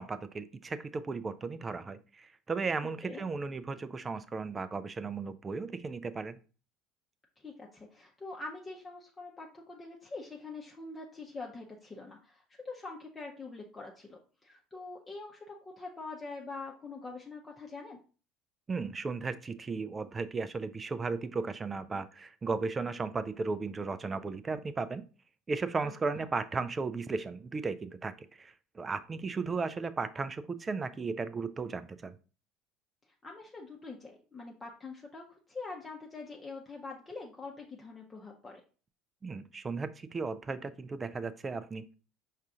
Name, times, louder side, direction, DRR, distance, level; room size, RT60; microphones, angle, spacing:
voice 1, 0.0-6.4 18.7-25.0 25.5-32.1 39.2-41.9, right 4 dB, 25° right, 14 dB, 0.4 m, -35 dB
voice 2, 7.4-18.0 25.8-26.3 33.2-38.6, left 3 dB, 25° left, -1 dB, 0.8 m, -44 dB
5.4 x 2.4 x 3.6 m, 0.36 s
figure-of-eight pair, 65°, 0 cm